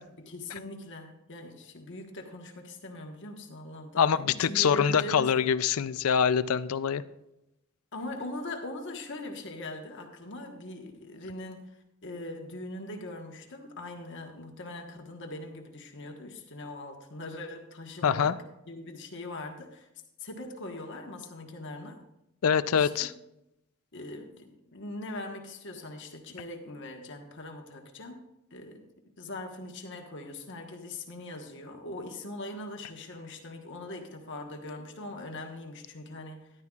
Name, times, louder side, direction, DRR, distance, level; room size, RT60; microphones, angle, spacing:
voice 1, 0.1-5.3 7.9-11.7 12.0-18.4 18.7-19.9 20.2-22.0 22.7-23.1 23.9-28.2 28.5-28.8 29.2-36.5, left 1 dB, 55° left, 3 dB, 1.4 m, -41 dB
voice 2, 4.0-7.0 18.0-18.3 22.4-23.1, left 7 dB, 75° left, 15 dB, 0.4 m, -24 dB
13.5 x 11.5 x 2.4 m, 0.88 s
head